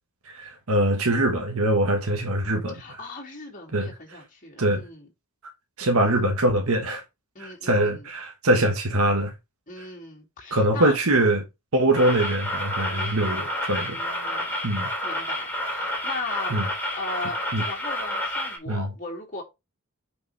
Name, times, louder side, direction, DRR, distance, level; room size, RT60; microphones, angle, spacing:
voice 1, 0.2-3.0 3.7-4.2 4.6-4.8 5.8-7.0 7.4-9.3 9.8-9.9 10.5-11.4 11.7-14.0 14.6-14.9 16.5-16.7 17.5-17.6 18.7-18.9, right 1 dB, 75° right, 1.4 m, -23 dB
voice 2, 2.7-5.1 6.0-6.2 7.3-8.1 9.7-11.3 12.9-13.6 13.9-14.6 15.0-16.5 17.0-19.4, left 3 dB, 35° left, 2.7 m, -38 dB
sound 1, 12.0-18.6, left 1 dB, 10° left, 3.2 m, -29 dB
8.2 x 5.2 x 3.3 m
head